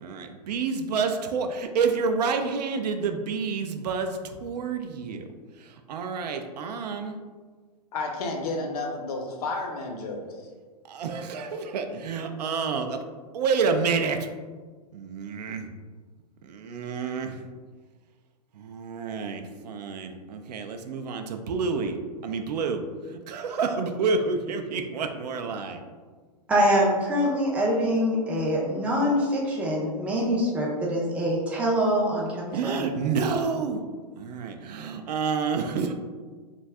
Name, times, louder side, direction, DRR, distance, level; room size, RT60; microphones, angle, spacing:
voice 1, 0.0-1.5 1.8-5.3 5.6-7.2 10.9-13.0 13.3-14.3 14.9-15.7 16.5-17.4 18.5-22.8 23.1-25.8 32.5-33.8 34.2-35.9, right 5 dB, 70° right, 6 dB, 0.4 m, -29 dB
voice 2, 7.9-10.4, left 3 dB, 60° left, 2 dB, 0.7 m, -31 dB
voice 3, 26.5-32.8, equal, 5° right, -4 dB, 0.4 m, -24 dB
2.6 x 2.3 x 3.2 m, 1.5 s
hypercardioid pair, 130°, 21 cm